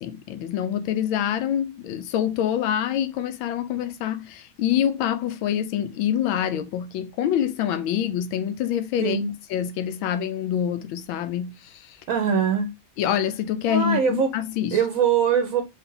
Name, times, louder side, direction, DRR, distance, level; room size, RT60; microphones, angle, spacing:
voice 1, 0.0-9.2 9.5-12.0 13.0-14.8, left 10 dB, 80° left, 1.4 m, -26 dB
voice 2, 9.0-9.3 12.1-12.7 13.7-14.3 14.7-15.6, right 7 dB, 55° right, 1.0 m, -22 dB
4.8 x 2.7 x 3.8 m
omnidirectional pair, 2.2 m